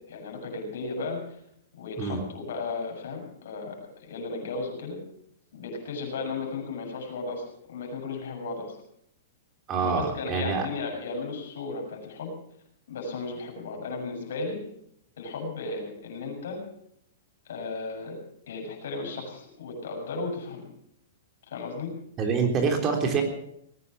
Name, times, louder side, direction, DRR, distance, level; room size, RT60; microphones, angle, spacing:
voice 1, 0.1-1.4 1.8-5.0 5.5-8.8 9.8-12.3 12.9-14.6 15.2-16.6 17.5-18.2 18.5-20.7 21.5-21.9, left 3 dB, 75° left, 1 dB, 7.0 m, -35 dB
voice 2, 9.7-10.7 22.2-23.2, right 5 dB, 30° right, 3 dB, 3.6 m, -26 dB
19.5 x 10.0 x 7.2 m, 0.74 s
hypercardioid pair, 130°, 0 cm